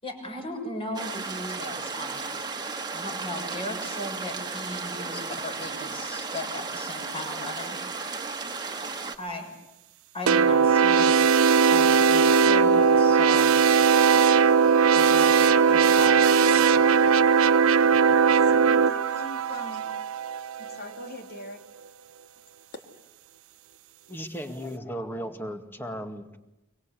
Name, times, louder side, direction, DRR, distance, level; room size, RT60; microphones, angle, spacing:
voice 1, 0.0-2.5 2.9-7.8 9.2-9.5 10.1-11.2 11.4-13.5 14.9-16.6, left 1 dB, 25° left, 3 dB, 6.8 m, -37 dB
sound 1, 0.9-9.2, right 4 dB, 20° right, 1.8 m, -34 dB
sound 2, 10.3-20.8, right 6 dB, 80° right, 0.8 m, -19 dB
voice 2, 14.1-14.5 18.4-19.9 20.6-21.6 22.7-22.8, left 1 dB, 50° left, 4 dB, 3.4 m, -42 dB
voice 3, 24.1-26.4, equal, 10° left, 6 dB, 2.0 m, -36 dB
24.5 x 24.5 x 8.4 m, 0.95 s
head